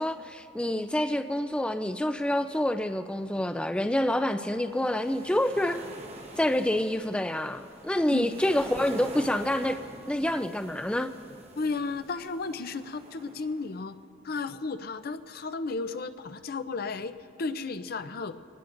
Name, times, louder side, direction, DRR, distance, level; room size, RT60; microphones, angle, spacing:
voice 1, 0.0-5.9 6.4-9.8 10.1-11.1, left 1 dB, 5° left, 8 dB, 0.3 m, -27 dB
sound 1, 4.5-13.8, right 1 dB, 35° right, 1.3 m, -46 dB
voice 2, 11.6-14.0 14.2-18.3, left 3 dB, 55° left, 10 dB, 0.5 m, -34 dB
25.0 x 19.0 x 2.6 m, 2.5 s
head